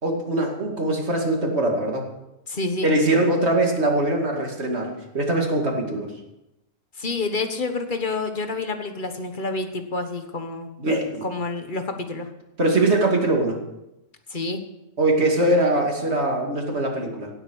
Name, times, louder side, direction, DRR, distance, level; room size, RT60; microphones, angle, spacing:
voice 1, 0.0-2.1 2.8-6.1 10.8-11.3 12.6-13.6 15.0-17.3, right 1 dB, 45° right, 1 dB, 2.7 m, -22 dB
voice 2, 2.5-2.9 7.0-10.7 11.2-12.3 14.3-14.6, left 3 dB, 35° left, 7 dB, 1.4 m, -28 dB
16.5 x 8.1 x 6.4 m, 0.91 s
omnidirectional pair, 1.5 m